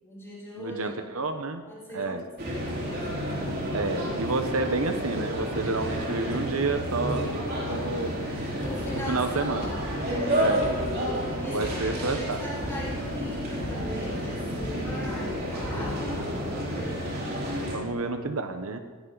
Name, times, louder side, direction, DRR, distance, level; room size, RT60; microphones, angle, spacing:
voice 1, 0.0-1.0 1.7-3.8 7.5-7.8 8.2-10.8 11.2-17.0, equal, 10° left, -8 dB, 5.0 m, -40 dB
voice 2, 0.6-1.6 1.9-2.3 3.7-7.3 7.7-8.5 8.9-9.8 10.3-10.7 11.5-12.5 16.2-16.4 17.7-18.8, right 3 dB, 65° right, 7 dB, 1.1 m, -30 dB
sound 1, 2.4-17.8, equal, 45° right, 4.2 m, -31 dB
sound 2, 8.6-16.5, left 1 dB, 40° left, 3.0 m, -41 dB
19.5 x 16.0 x 4.1 m, 1.4 s
head